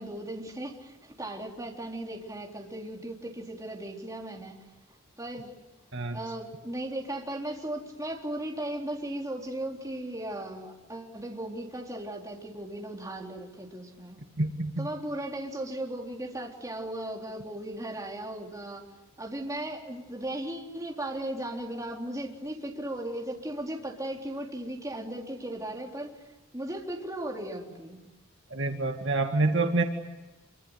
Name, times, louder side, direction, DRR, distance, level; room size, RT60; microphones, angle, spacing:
voice 1, 0.0-4.7 5.2-5.5 6.1-14.2 14.8-18.9 19.2-28.0, right 1 dB, 15° right, 0 dB, 3.9 m, -37 dB
voice 2, 14.4-14.9 28.5-29.8, right 2 dB, 60° right, 4 dB, 2.1 m, -27 dB
27.5 x 24.5 x 8.2 m, 1.1 s
head